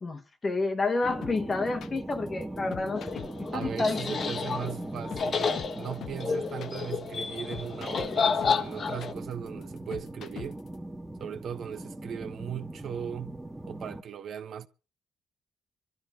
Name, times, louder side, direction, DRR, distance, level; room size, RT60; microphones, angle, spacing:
voice 1, 0.0-3.2 3.5-4.2, left 3 dB, 35° left, 1.2 m, -30 dB
sound 1, 1.0-14.0, right 1 dB, 10° right, 1.6 m, -40 dB
sound 2, 1.2-10.8, left 10 dB, 70° left, 1.0 m, -43 dB
sound 3, 2.9-9.1, left 5 dB, 50° left, 1.4 m, -31 dB
voice 2, 3.5-10.6 11.2-13.3 13.7-14.7, right 8 dB, 65° right, 1.0 m, -38 dB
26.0 x 12.5 x 3.7 m
cardioid pair, 90°, 0 cm